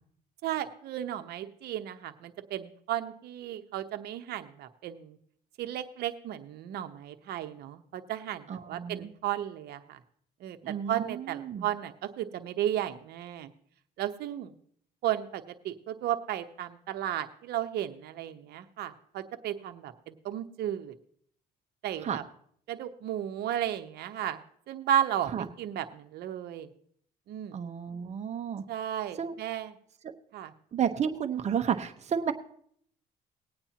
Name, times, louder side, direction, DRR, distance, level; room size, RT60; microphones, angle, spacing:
voice 1, 0.4-5.2 5.6-10.0 10.4-13.5 14.0-14.5 15.0-20.9 21.8-22.2 22.7-24.4 24.7-26.7 27.3-27.6 28.7-29.7 30.3-30.5, right 11 dB, 70° right, 9 dB, 1.0 m, -34 dB
voice 2, 8.5-9.1 10.6-11.7 22.0-22.2 25.3-25.4 27.5-28.6 29.2-29.3 30.7-32.3, right 8 dB, 40° right, 7 dB, 1.0 m, -31 dB
20.0 x 8.8 x 2.9 m, 0.64 s
cardioid pair, 110°, 17 cm